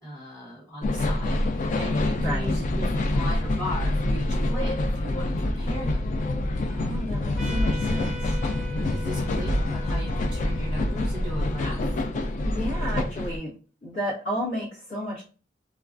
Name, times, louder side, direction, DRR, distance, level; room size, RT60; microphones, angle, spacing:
voice 1, 0.0-6.0 8.7-12.0, equal, 15° left, -7 dB, 1.0 m, -37 dB
sound 1, 0.8-13.4, left 1 dB, 45° left, 0.3 m, -26 dB
sound 2, 5.9-6.7 7.5-8.4 9.5-10.3, equal, 70° right, 0.4 m, -35 dB
voice 2, 6.7-8.4 12.4-13.5 13.8-15.2, equal, 80° left, -9 dB, 1.2 m, -32 dB
Trumpet, 7.4-12.4, equal, 5° right, 0.6 m, -43 dB
3.2 x 2.3 x 2.4 m, 0.37 s
head